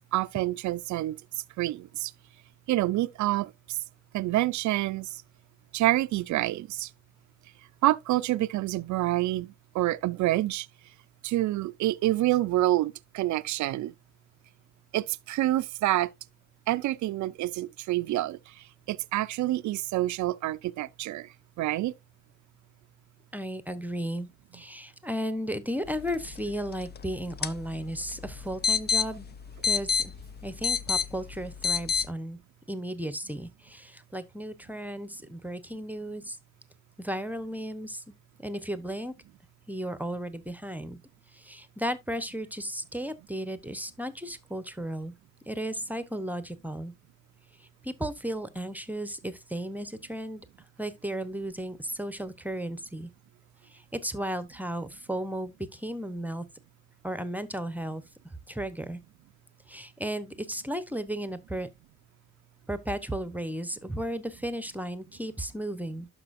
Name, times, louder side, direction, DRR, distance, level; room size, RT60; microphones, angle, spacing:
voice 1, 0.1-1.2 1.6-2.1 2.7-3.8 4.1-5.1 5.7-6.9 7.8-10.7 11.2-13.9 14.9-16.1 16.7-18.4 18.9-21.3 21.6-21.9, right 16 dB, 70° right, 0.5 m, -27 dB
voice 2, 23.3-29.3 29.6-30.1 30.4-32.4 32.7-36.4 37.0-38.0 38.4-39.1 39.7-41.0 41.3-45.1 45.5-46.9 47.8-50.4 50.8-53.1 53.7-56.4 57.0-58.0 58.5-59.0 59.7-61.7 62.7-66.1, equal, 5° right, 0.9 m, -34 dB
sound 1, 25.9-32.1, left 6 dB, 35° left, 0.6 m, -31 dB
12.0 x 5.1 x 2.6 m
cardioid pair, 90°, 30 cm